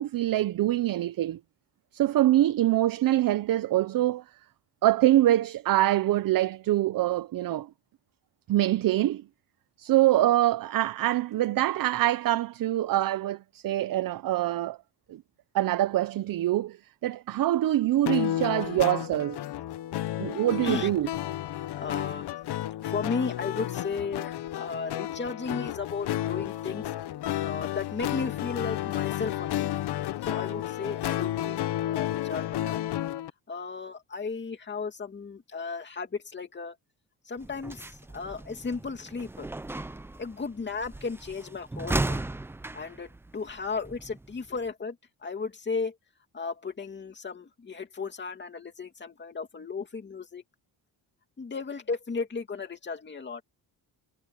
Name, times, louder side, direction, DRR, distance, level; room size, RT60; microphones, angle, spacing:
voice 1, 0.0-1.4 1.9-4.2 4.8-7.7 8.5-9.2 9.8-14.8 15.1-15.2 15.5-16.8 17.0-19.4 20.2-21.1, right 14 dB, 55° right, 0.6 m, -24 dB
sound 1, 18.1-33.3, left 13 dB, 75° left, 0.9 m, -32 dB
voice 2, 21.8-22.3 22.8-26.9 27.4-29.7 30.2-32.8 33.5-36.7 37.3-39.5 40.2-42.2 42.7-45.0 45.2-45.9 46.3-50.4 51.4-53.4, left 4 dB, 25° left, 2.5 m, -35 dB
sound 2, 37.4-44.7, right 2 dB, 5° right, 0.3 m, -36 dB
wide cardioid pair, 165°, 40 cm